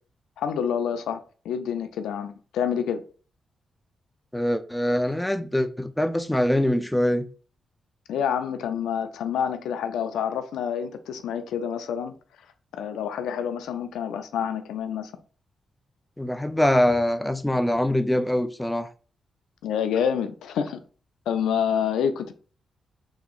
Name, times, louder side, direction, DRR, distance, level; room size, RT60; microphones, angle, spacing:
voice 1, 0.4-3.0 8.1-12.1 12.7-15.1 19.6-20.8 21.3-22.3, left 8 dB, 85° left, 0.3 m, -28 dB
voice 2, 4.3-7.3 16.2-18.9, left 1 dB, 10° left, 0.4 m, -23 dB
3.5 x 2.8 x 2.4 m
supercardioid pair, 50°, 0 cm